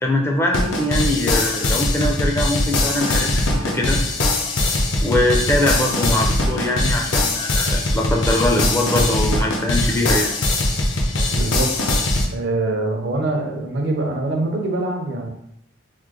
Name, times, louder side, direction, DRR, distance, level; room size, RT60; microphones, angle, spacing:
voice 1, 0.0-4.0 5.0-10.3, left 1 dB, 15° left, 0 dB, 0.4 m, -22 dB
sound 1, 0.5-12.3, left 2 dB, 80° left, 0.5 m, -21 dB
voice 2, 11.3-11.7 12.3-15.3, right 2 dB, 65° right, 2 dB, 0.6 m, -24 dB
3.0 x 2.0 x 3.6 m, 0.74 s
head